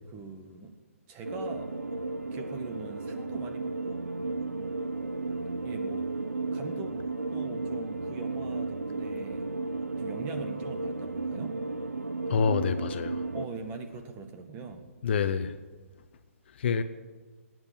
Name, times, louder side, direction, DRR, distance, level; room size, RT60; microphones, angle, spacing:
voice 1, 0.1-0.7 1.1-1.8 2.3-4.0 5.6-6.1 6.5-7.0 7.3-9.5 10.0-11.6 13.3-14.8 16.8-16.9, right 4 dB, 20° right, 5 dB, 1.7 m, -42 dB
sound 1, 1.2-13.5, right 3 dB, 90° right, 1.0 m, -34 dB
voice 2, 12.3-13.2 15.0-15.5 16.6-16.8, left 6 dB, 50° left, 11 dB, 0.9 m, -26 dB
19.0 x 9.3 x 7.7 m, 1.3 s
figure-of-eight pair, 140°, 8 cm